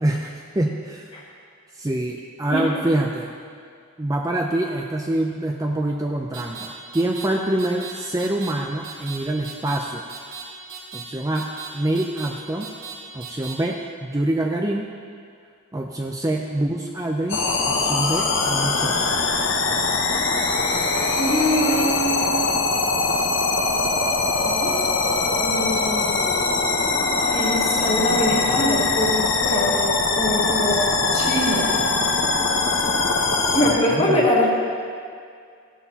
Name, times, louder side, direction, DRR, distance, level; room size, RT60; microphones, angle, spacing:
voice 1, 0.0-1.1 1.7-3.3 4.0-10.0 10.9-11.5 11.7-12.7 13.1-14.9 15.7-19.1 33.7-34.3, right 1 dB, 15° right, 1 dB, 0.4 m, -25 dB
sound 1, 6.3-6.7 6.9-7.3 7.6-7.9 8.2-8.5 8.8-9.2 9.4-9.8 10.1-10.4 10.7-11.0 11.3-11.7 12.0-12.3 12.6-12.9 13.2-13.5, right 7 dB, 75° right, 2.3 m, -36 dB
sound 2, 17.3-33.7, left 3 dB, 60° left, 1.0 m, -22 dB
voice 2, 21.1-22.5 24.4-24.8 25.4-26.3 27.2-31.8 33.5-34.5, left 1 dB, 30° left, -4 dB, 1.8 m, -23 dB
15.5 x 11.0 x 2.9 m, 2.2 s
head